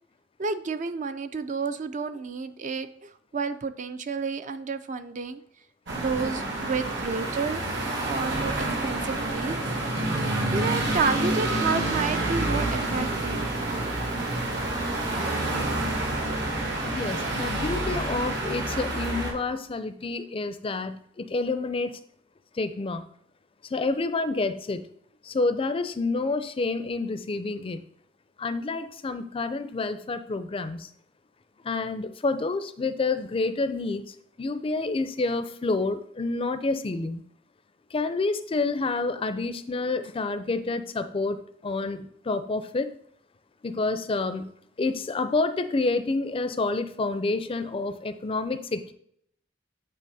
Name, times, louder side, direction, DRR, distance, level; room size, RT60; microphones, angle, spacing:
voice 1, 0.4-2.9 3.3-5.4 6.0-7.6 8.0-8.5 8.8-9.6 10.5-13.5, right 4 dB, 40° right, 10 dB, 0.4 m, -30 dB
sound 1, 5.9-19.3, right 2 dB, 70° right, 2.0 m, -28 dB
voice 2, 16.8-22.0 22.5-23.1 23.6-24.8 25.2-27.8 28.4-30.9 31.6-37.2 37.9-42.9 43.6-44.5 44.8-48.9, left 3 dB, 30° left, 11 dB, 0.4 m, -28 dB
9.1 x 4.0 x 4.1 m, 0.68 s
head